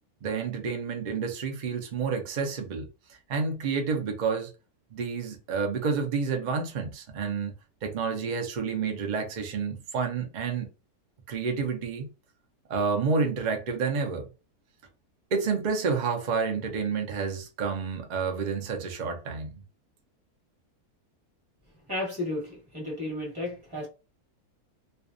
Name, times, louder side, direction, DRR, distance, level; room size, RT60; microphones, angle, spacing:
voice 1, 0.2-4.5 4.9-7.5 7.8-10.7 11.3-12.1 12.7-14.3 15.3-19.5, right 5 dB, 85° right, 0.4 m, -29 dB
voice 2, 21.9-23.9, left 1 dB, 15° right, 1.0 m, -33 dB
2.5 x 2.2 x 2.5 m
omnidirectional pair, 1.6 m